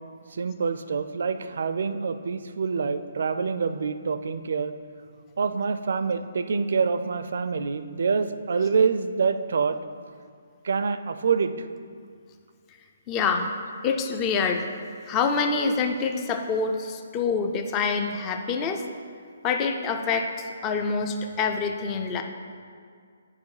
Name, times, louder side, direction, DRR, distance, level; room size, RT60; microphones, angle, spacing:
voice 1, 0.4-4.7 5.4-9.8 10.6-11.5, right 5 dB, 55° right, 11 dB, 0.4 m, -26 dB
voice 2, 13.1-13.5 13.8-14.7 15.1-18.8 19.4-20.3 20.6-22.2, left 5 dB, 15° left, 4 dB, 0.4 m, -26 dB
10.5 x 5.2 x 4.8 m, 2.1 s
hypercardioid pair, 180°, 0 cm